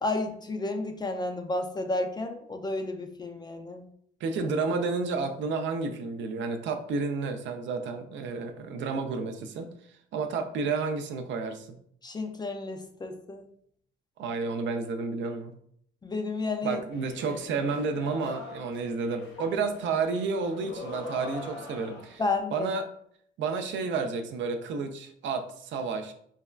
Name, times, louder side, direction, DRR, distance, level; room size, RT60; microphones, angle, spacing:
voice 1, 0.0-3.9 12.0-13.4 16.0-16.8 22.2-22.7, left 2 dB, 20° left, 5 dB, 0.3 m, -31 dB
voice 2, 4.2-11.8 14.2-15.5 16.6-22.2 22.5-22.9 23.4-26.1, right 4 dB, 70° right, 6 dB, 0.4 m, -31 dB
sound 1, 16.9-22.4, left 2 dB, 75° left, 1.0 m, -43 dB
3.4 x 2.2 x 2.3 m, 0.66 s
cardioid pair, 90°, 20 cm